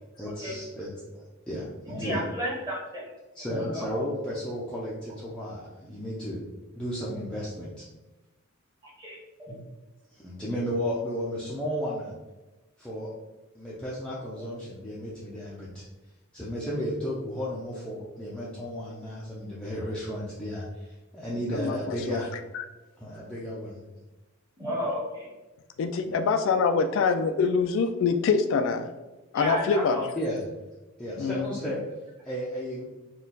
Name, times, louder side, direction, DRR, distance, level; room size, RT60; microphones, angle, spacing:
voice 1, 0.2-2.2 3.3-6.4 6.7-7.8 10.1-12.1 12.8-13.1 13.5-15.8 16.3-22.3 23.0-23.8 30.2-30.4 31.0-31.8 32.2-32.8, equal, 5° left, -8 dB, 0.6 m, -34 dB
voice 2, 1.9-3.0 3.5-3.6 3.9-4.0 8.8-9.2 24.6-25.3 29.3-30.0, equal, 15° right, -6 dB, 1.4 m, -32 dB
voice 3, 21.5-22.2 22.5-22.7 25.8-28.9 29.3-30.1 31.2-31.7, left 5 dB, 65° left, 8 dB, 0.3 m, -25 dB
4.2 x 2.3 x 3.8 m, 1.1 s
head